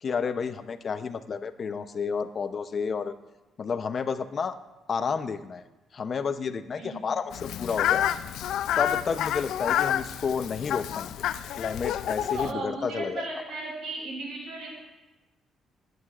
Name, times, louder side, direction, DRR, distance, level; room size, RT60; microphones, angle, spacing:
voice 1, 0.0-3.1 3.6-4.6 4.9-5.6 5.9-8.1 8.8-11.1 11.5-13.3, left 5 dB, 45° left, 10 dB, 0.7 m, -31 dB
voice 2, 6.8-7.1 12.2-14.8, right 3 dB, 80° right, -3 dB, 3.1 m, -36 dB
Fowl, 7.3-12.5, left 11 dB, 80° left, 0.3 m, -29 dB
18.0 x 9.3 x 2.5 m, 1.1 s
cardioid pair, 90°, 0 cm